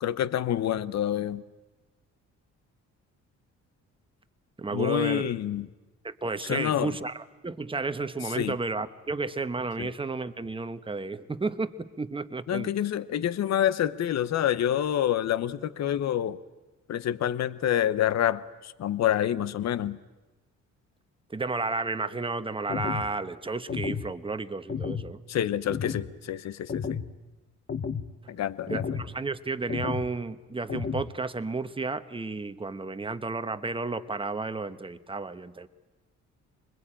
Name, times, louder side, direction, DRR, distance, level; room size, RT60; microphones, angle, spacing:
voice 1, 0.0-1.4 4.7-5.7 6.5-6.9 8.4-8.6 9.8-9.9 12.5-16.4 16.9-20.0 25.3-27.0 28.3-28.8, left 11 dB, 60° left, 16 dB, 0.9 m, -27 dB
voice 2, 4.6-5.3 6.0-12.7 21.3-25.2 28.7-35.7, right 3 dB, 15° right, 10 dB, 1.1 m, -32 dB
sound 1, 22.7-23.1 23.7-24.1 24.7-25.1 25.7-26.1 26.7-27.1 27.7-28.1 28.7-29.1 29.7-30.1 30.7-31.1, left 6 dB, 40° left, 1.2 m, -32 dB
25.0 x 20.5 x 8.9 m, 1.1 s
cardioid pair, 90°, 30 cm